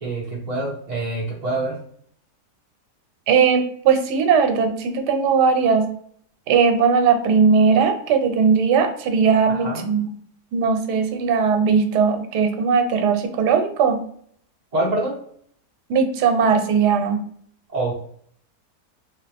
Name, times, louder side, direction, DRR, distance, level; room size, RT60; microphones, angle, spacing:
voice 1, 0.0-1.8 9.5-9.9 14.7-15.1 17.7-17.9, right 2 dB, 40° right, -4 dB, 0.6 m, -25 dB
voice 2, 3.3-5.9 6.5-10.1 10.5-14.0 15.9-17.2, right 6 dB, 85° right, 6 dB, 1.2 m, -18 dB
3.5 x 2.9 x 3.4 m, 0.62 s
omnidirectional pair, 1.7 m